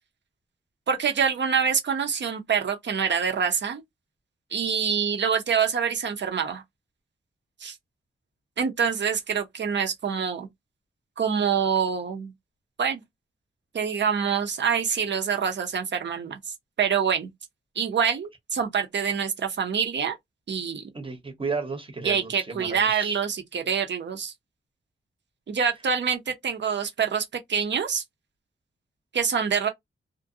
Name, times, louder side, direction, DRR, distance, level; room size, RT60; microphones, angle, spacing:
voice 1, 0.9-3.8 4.5-6.6 7.6-7.8 8.6-10.5 11.2-12.3 12.8-13.0 13.7-16.4 16.8-17.3 17.8-20.2 20.5-20.8 22.0-24.3 25.5-28.0 29.1-29.7, right 7 dB, 60° right, 0.7 m, -26 dB
voice 2, 20.9-23.2, right 4 dB, 25° right, 0.8 m, -33 dB
2.4 x 2.2 x 2.6 m
wide cardioid pair, 95°, 21 cm